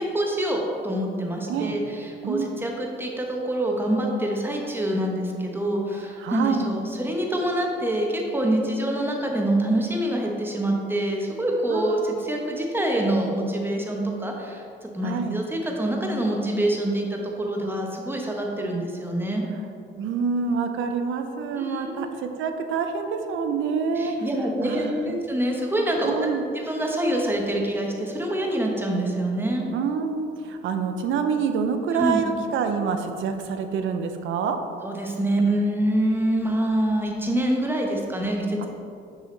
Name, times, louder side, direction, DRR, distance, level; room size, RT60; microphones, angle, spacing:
voice 1, 0.0-19.4 21.6-22.1 23.9-29.7 31.9-32.2 34.8-38.7, right 1 dB, 10° right, 0 dB, 1.1 m, -26 dB
voice 2, 6.2-6.7 11.7-12.1 15.0-15.4 20.0-24.1 24.6-25.1 26.0-26.5 29.7-34.6, right 6 dB, 80° right, 7 dB, 0.6 m, -27 dB
6.7 x 5.0 x 3.9 m, 2.6 s
cardioid pair, 90°, 20 cm